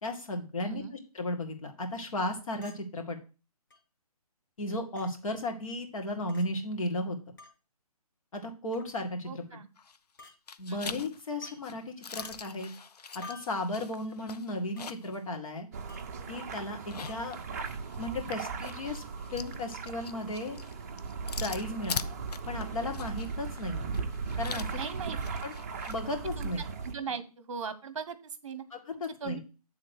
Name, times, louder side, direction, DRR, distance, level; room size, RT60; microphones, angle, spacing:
voice 1, 0.0-3.2 4.6-7.2 8.3-9.4 10.6-12.7 13.1-15.7 16.3-17.4 18.0-19.0 19.3-20.6 21.4-22.1 22.5-24.0 24.4-24.7 25.4-25.6 25.9-26.6 28.7-29.4, left 1 dB, 60° left, 3 dB, 2.0 m, -35 dB
voice 2, 0.6-0.9 9.2-9.7 10.7-10.9 24.7-25.2 26.4-26.5 26.8-28.6 28.9-29.4, right 6 dB, 50° right, 12 dB, 1.0 m, -39 dB
Chink clink, 2.6-2.8 3.7-3.8 5.0-5.1 6.3-6.5 7.4-7.6 8.7-9.0 10.2-10.4 11.4-11.6 12.2-12.3 13.2-13.6 14.8-14.9 15.9-16.1 17.1-17.2, left 3 dB, 30° left, 1.5 m, -49 dB
sound 1, 9.8-10.2 10.5-15.2 15.6-15.7 16.7-26.0, left 5 dB, 85° left, 0.6 m, -43 dB
sound 2, 15.7-26.9, right 5 dB, 25° right, 0.6 m, -38 dB
7.9 x 3.7 x 6.4 m, 0.34 s
hypercardioid pair, 165°, 20 cm